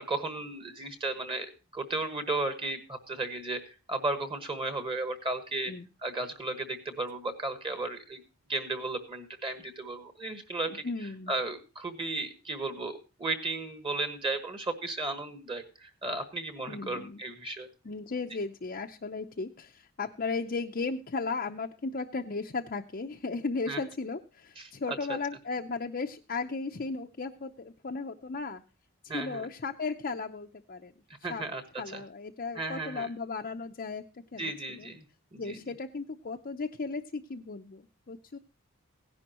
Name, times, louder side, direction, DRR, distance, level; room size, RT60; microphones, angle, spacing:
voice 1, 0.0-1.5 1.7-5.7 6.0-8.2 8.5-10.9 11.3-17.7 23.7-23.8 24.6-25.2 29.1-29.5 31.2-31.6 31.9-32.0 32.5-33.1 34.4-35.0 35.3-35.6, right 2 dB, 25° right, 7 dB, 1.4 m, -34 dB
voice 2, 10.8-11.3 16.7-17.2 17.8-28.6 29.0-30.9 31.3-31.4 31.8-34.9 35.4-38.4, left 4 dB, 40° left, 3 dB, 0.6 m, -36 dB
17.0 x 10.5 x 2.9 m, 0.31 s
head